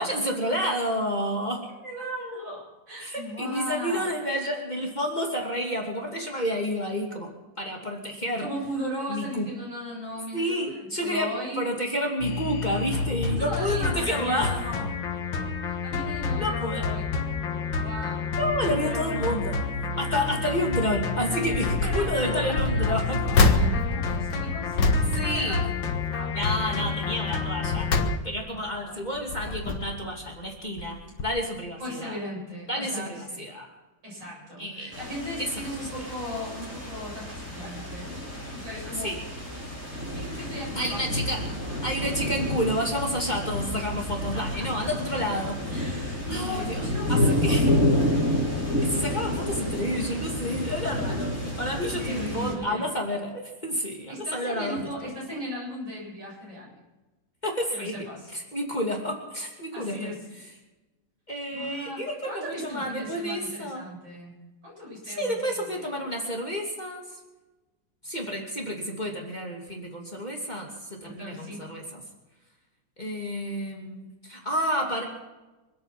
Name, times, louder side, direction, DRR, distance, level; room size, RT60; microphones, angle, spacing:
voice 1, 0.0-1.7 3.0-8.5 9.1-9.5 10.3-14.7 16.4-16.9 18.4-19.6 20.0-23.3 25.1-25.6 26.3-27.9 28.2-32.2 32.7-33.7 34.6-34.9 35.4-35.7 39.0-39.2 40.8-41.5 41.8-45.6 46.3-47.7 48.8-55.1 57.4-58.1 58.3-60.2 61.3-63.8 65.0-67.2 68.0-72.0 73.0-75.0, equal, 20° left, 0 dB, 2.8 m, -30 dB
voice 2, 1.8-4.0 8.4-11.7 13.3-14.9 15.7-17.1 17.8-18.3 18.6-19.4 21.6-25.7 26.1-27.4 28.5-29.1 31.8-33.4 34.0-39.1 40.1-41.0 41.4-41.8 44.2-44.9 45.7-47.9 52.0-52.9 54.1-56.8 57.7-58.3 59.7-60.2 61.5-64.4 64.6-65.9 71.0-71.7, equal, 75° right, -4 dB, 8.6 m, -38 dB
sound 1, 12.2-28.2, left 5 dB, 85° left, 2.1 m, -29 dB
sound 2, 21.4-22.1 22.5-26.2 26.6-26.9 27.4-28.7 29.2-30.1 30.8-30.9 31.2-31.3, left 2 dB, 70° left, 2.1 m, -26 dB
sound 3, 34.9-52.5, left 1 dB, 5° right, 5.7 m, -29 dB
26.0 x 9.2 x 6.1 m, 1.1 s
omnidirectional pair, 2.0 m